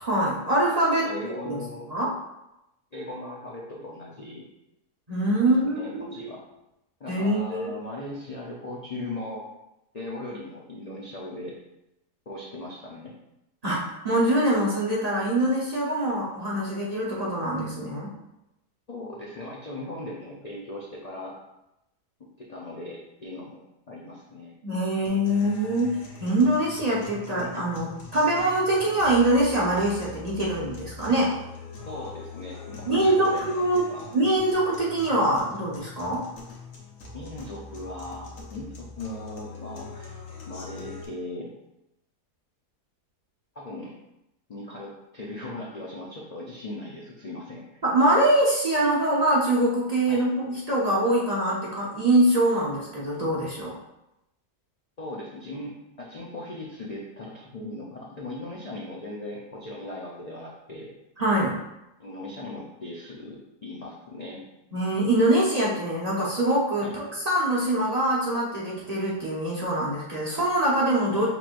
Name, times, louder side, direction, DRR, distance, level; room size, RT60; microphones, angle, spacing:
voice 1, 0.0-1.6 1.9-2.1 5.1-6.2 7.1-7.7 13.6-18.1 24.6-31.4 32.8-36.2 47.8-53.7 61.2-61.6 64.7-71.3, right 1 dB, 35° right, -6 dB, 0.7 m, -24 dB
voice 2, 1.0-1.9 2.9-4.5 5.4-6.4 7.0-9.5 9.9-11.6 12.3-13.1 18.9-21.4 22.4-23.6 23.9-24.5 31.8-33.5 33.9-34.1 37.1-40.2 40.5-41.5 43.5-43.9 44.5-47.8 50.1-50.2 55.0-60.9 62.0-64.4 66.8-66.9 71.1-71.2, left 1 dB, 70° left, -4 dB, 0.3 m, -38 dB
sound 1, 25.1-41.1, left 3 dB, 90° left, 1.5 m, -43 dB
6.0 x 3.5 x 2.5 m, 0.89 s
omnidirectional pair, 1.7 m